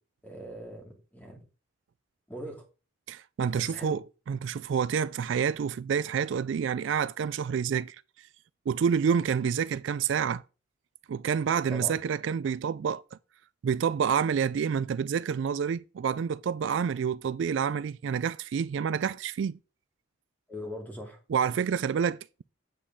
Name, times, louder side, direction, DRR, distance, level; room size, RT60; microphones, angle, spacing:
voice 1, 0.2-1.4 2.3-2.6 3.6-4.0 11.7-12.0 20.5-21.2, equal, 10° left, 2.2 m, -40 dB
voice 2, 3.1-8.0 8.7-10.4 11.1-13.2 13.6-19.6 21.3-22.4, right 7 dB, 65° right, 0.3 m, -28 dB
8.4 x 7.6 x 3.6 m
head